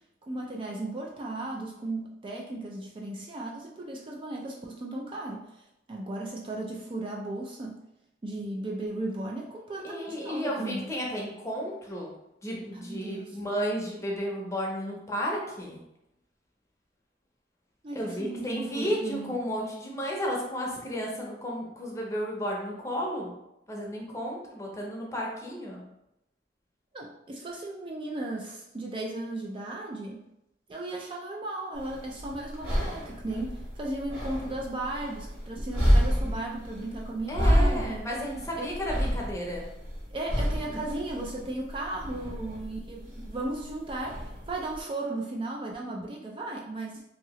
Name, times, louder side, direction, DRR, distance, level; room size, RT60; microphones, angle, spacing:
voice 1, 0.2-7.8 8.2-10.9 12.7-13.4 17.8-19.4 26.9-30.2 30.7-38.1 38.6-38.7 40.1-47.0, right 2 dB, 30° right, -1 dB, 0.3 m, -36 dB
voice 2, 9.8-12.1 12.4-15.8 17.9-23.4 23.7-25.8 37.3-39.7, equal, 15° left, -2 dB, 0.6 m, -33 dB
sound 1, 31.7-44.8, equal, 60° right, 1.3 m, -29 dB
2.8 x 2.7 x 2.9 m, 0.85 s
head